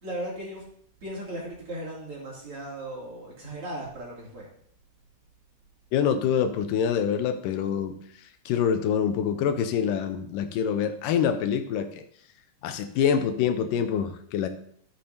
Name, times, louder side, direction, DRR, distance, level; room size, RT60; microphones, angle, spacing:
voice 1, 0.0-0.6 1.0-4.5, right 1 dB, 45° right, -5 dB, 3.4 m, -37 dB
voice 2, 5.9-7.9 8.5-12.0 12.6-14.5, left 8 dB, 85° left, 8 dB, 2.3 m, -25 dB
13.0 x 7.5 x 2.7 m, 0.64 s
omnidirectional pair, 3.9 m